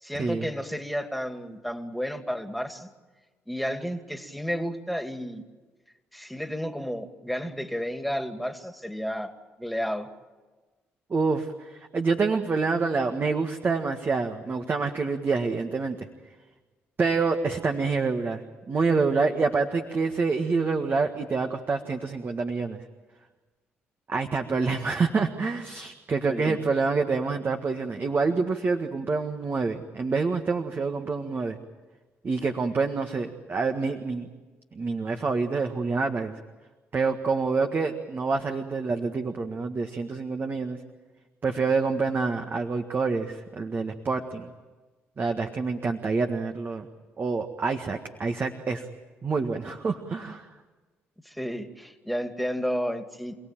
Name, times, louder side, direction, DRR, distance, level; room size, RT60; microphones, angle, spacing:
voice 1, 0.0-2.9 3.5-5.4 6.1-10.1 26.3-26.6 51.2-53.4, equal, ahead, 6 dB, 2.5 m, -32 dB
voice 2, 11.1-16.1 17.0-22.8 24.1-31.6 32.2-34.3 34.7-36.3 36.9-40.8 41.4-44.5 45.2-46.9 47.2-48.9 49.2-50.5, right 4 dB, 40° right, 5 dB, 1.7 m, -27 dB
28.5 x 17.5 x 9.1 m, 1.3 s
supercardioid pair, 60°, 5 cm